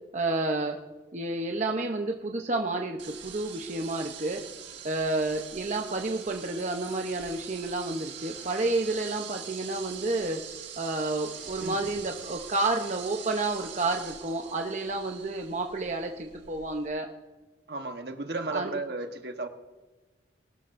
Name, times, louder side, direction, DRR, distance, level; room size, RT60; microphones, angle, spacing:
voice 1, 0.1-0.8 1.1-4.4 4.8-10.4 10.8-17.1 18.5-18.8, right 2 dB, 40° right, 2 dB, 0.8 m, -30 dB
sound 1, 3.0-16.9, right 8 dB, 80° right, 1.8 m, -44 dB
voice 2, 17.7-19.5, right 3 dB, 60° right, 6 dB, 1.2 m, -34 dB
20.5 x 12.0 x 2.6 m, 1.3 s
head